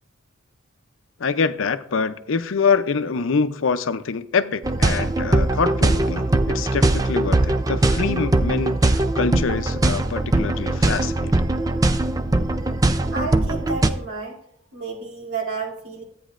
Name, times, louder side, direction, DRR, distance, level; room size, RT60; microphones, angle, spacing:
voice 1, 1.2-11.3, left 5 dB, 80° left, 0.6 m, -25 dB
sound 1, 4.6-13.9, right 2 dB, 20° right, 0.4 m, -21 dB
voice 2, 13.1-14.4 14.7-16.0, right 4 dB, 85° right, 3.1 m, -31 dB
13.5 x 9.1 x 2.5 m
head